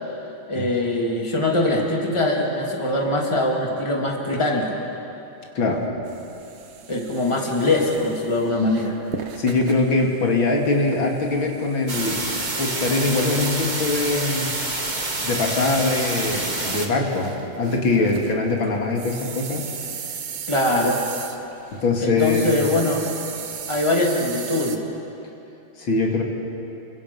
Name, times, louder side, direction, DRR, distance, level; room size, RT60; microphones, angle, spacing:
voice 1, 0.5-4.8 6.9-9.0 20.5-21.0 22.0-23.1 23.7-24.8, left 2 dB, 15° left, -1 dB, 2.7 m, -22 dB
voice 2, 5.5-5.9 9.4-14.5 15.2-19.7 21.7-22.6 25.8-26.2, left 3 dB, 75° left, 0 dB, 3.2 m, -22 dB
sound 1, 6.1-21.9 22.2-24.8, right 7 dB, 90° right, 2.1 m, -38 dB
sound 2, 11.9-16.9, right 2 dB, 25° right, 1.7 m, -27 dB
29.5 x 24.5 x 5.6 m, 3.0 s
omnidirectional pair, 2.2 m